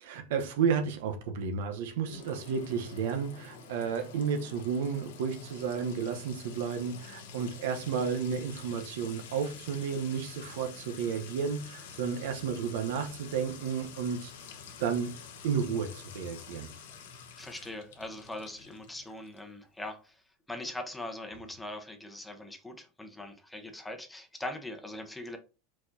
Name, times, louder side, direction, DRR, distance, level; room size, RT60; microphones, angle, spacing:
voice 1, 0.0-14.3 14.8-15.2 15.4-16.7, right 6 dB, 80° right, 0.9 m, -32 dB
Sink (filling or washing) / Trickle dribble / Fill (with liquid), 2.1-19.5, left 6 dB, 85° left, 0.9 m, -48 dB
voice 2, 17.4-20.2 20.5-25.4, left 1 dB, 5° left, 0.8 m, -41 dB
4.5 x 4.3 x 2.7 m
supercardioid pair, 120°, 0 cm